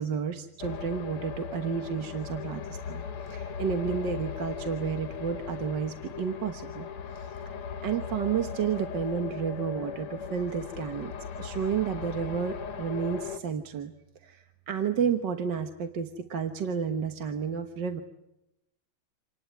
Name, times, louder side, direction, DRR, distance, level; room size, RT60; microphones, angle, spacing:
voice 1, 0.0-6.9 7.1-7.3 7.8-13.9 14.2-18.0, right 7 dB, 60° right, 7 dB, 1.8 m, -31 dB
sound 1, 0.6-13.4, left 6 dB, 80° left, 2.1 m, -38 dB
28.0 x 19.0 x 9.6 m, 0.89 s
omnidirectional pair, 2.4 m